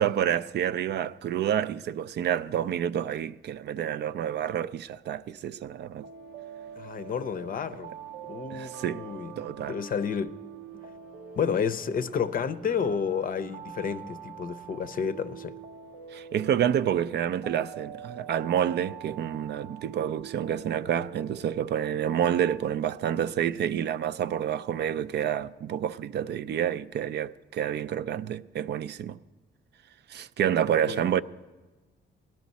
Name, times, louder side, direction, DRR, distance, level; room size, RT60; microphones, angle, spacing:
voice 1, 0.0-6.1 8.5-9.0 9.4-9.8 16.1-29.2 30.1-31.2, right 9 dB, 60° right, 0.4 m, -28 dB
sound 1, 6.0-22.6, right 7 dB, 90° right, 0.7 m, -45 dB
voice 2, 6.8-7.9 8.3-10.3 11.4-15.6 30.5-30.6 30.9-31.1, left 6 dB, 45° left, 0.6 m, -31 dB
18.0 x 11.5 x 4.1 m
cardioid pair, 90°, 20 cm